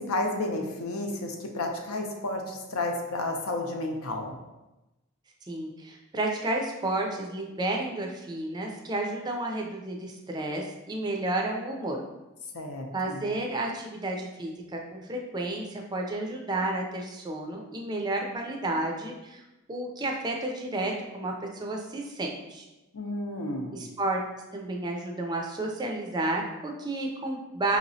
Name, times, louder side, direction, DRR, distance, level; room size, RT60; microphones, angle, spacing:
voice 1, 0.0-4.3 12.5-13.2 22.9-23.8, left 2 dB, 80° left, 3 dB, 0.7 m, -32 dB
voice 2, 5.5-12.0 12.9-19.4 19.7-22.6 23.7-24.2 24.5-27.8, right 2 dB, 20° right, 1 dB, 0.4 m, -31 dB
5.3 x 2.9 x 2.7 m, 1.0 s
head